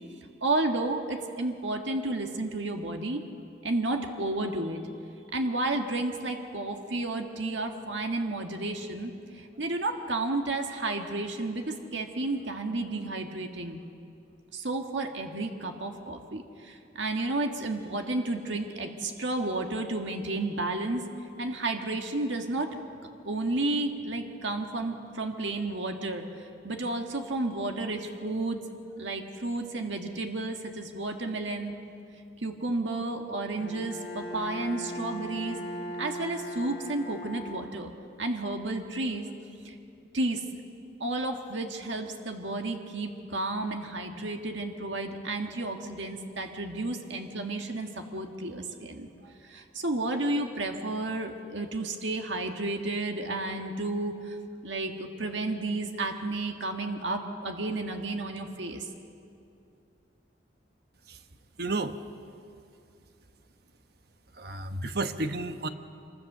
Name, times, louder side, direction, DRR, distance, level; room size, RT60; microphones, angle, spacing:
voice 1, 0.4-3.2 3.6-4.8 5.3-13.8 14.5-21.0 21.4-22.8 23.2-28.6 29.0-31.8 32.4-35.6 36.0-37.9 38.2-39.3 39.6-39.7 40.1-40.4 41.0-58.9, right 2 dB, 85° right, 4 dB, 1.7 m, -32 dB
Bowed string instrument, 33.6-38.1, equal, 50° left, 6.8 m, -39 dB
voice 2, 61.6-61.9 64.4-65.7, right 2 dB, 55° right, 8 dB, 1.1 m, -31 dB
26.0 x 23.5 x 6.8 m, 2.6 s
head